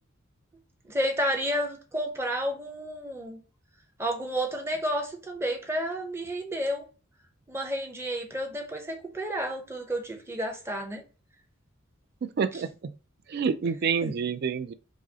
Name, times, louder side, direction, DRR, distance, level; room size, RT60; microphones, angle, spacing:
voice 1, 0.8-3.4 4.0-6.9 7.5-11.0 14.0-14.1, equal, 10° right, 0.7 m, -31 dB
voice 2, 12.2-12.9 13.3-14.7, right 6 dB, 50° right, 0.3 m, -28 dB
4.7 x 2.0 x 2.7 m
head